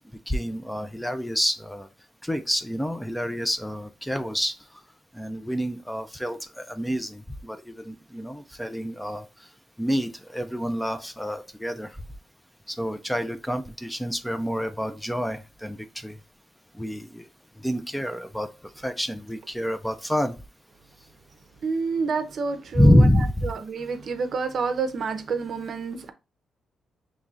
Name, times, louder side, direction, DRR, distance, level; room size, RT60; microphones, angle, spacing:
voice 1, 0.3-1.9 2.2-4.5 5.1-9.2 9.8-12.0 12.7-16.2 16.8-17.3 17.6-18.5 18.8-20.4 22.7-23.5, equal, 5° left, 0.4 m, -27 dB
voice 2, 21.6-23.1 23.4-26.1, right 5 dB, 55° right, 0.6 m, -28 dB
5.3 x 3.1 x 2.4 m
cardioid pair, 110°, 0 cm